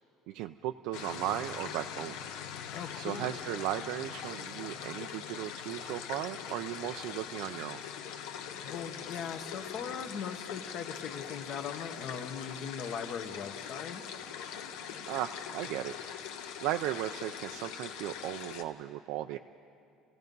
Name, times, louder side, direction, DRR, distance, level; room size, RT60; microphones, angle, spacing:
voice 1, 0.3-2.2 3.0-7.8 15.1-16.3 16.6-19.4, right 13 dB, 70° right, 7 dB, 0.4 m, -36 dB
sound 1, 0.9-18.6, left 8 dB, 85° left, 1.2 m, -42 dB
voice 2, 2.7-3.5 8.6-14.0, left 7 dB, 45° left, 7 dB, 1.1 m, -40 dB
29.5 x 16.5 x 5.4 m, 2.5 s
cardioid pair, 170°, 0 cm